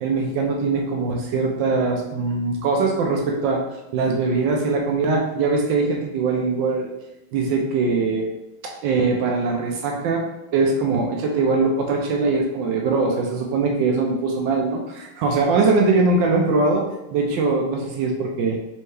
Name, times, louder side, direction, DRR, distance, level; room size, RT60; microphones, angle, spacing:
voice 1, 0.0-6.9 7.3-8.3 8.6-10.3 10.5-18.6, right 3 dB, 75° right, 1 dB, 1.1 m, -22 dB
4.4 x 2.7 x 3.2 m, 0.94 s
omnidirectional pair, 2.3 m